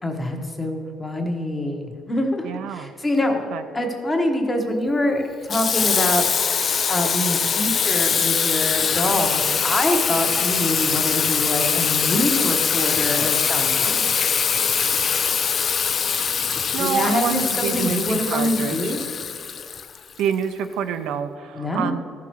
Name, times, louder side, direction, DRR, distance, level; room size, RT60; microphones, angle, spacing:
voice 1, 0.0-6.2 6.9-14.2 16.8-19.0 21.5-21.9, left 1 dB, 15° left, 3 dB, 1.1 m, -25 dB
voice 2, 2.4-2.9 3.5-3.6 16.7-18.9 20.2-22.0, right 8 dB, 85° right, 9 dB, 0.6 m, -27 dB
Water tap faucet / Sink (filling or washing), 5.5-20.3, left 6 dB, 35° left, 0.3 m, -22 dB
14.5 x 5.9 x 4.6 m, 2.3 s
cardioid pair, 155°, 0 cm